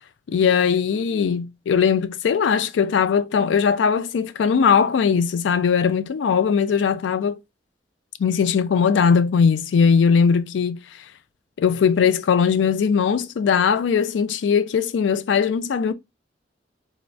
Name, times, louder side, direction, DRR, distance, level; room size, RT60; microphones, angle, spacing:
voice 1, 0.3-7.4 8.2-10.8 11.6-15.9, left 6 dB, 75° left, 0.3 m, -19 dB
3.4 x 2.1 x 2.4 m
head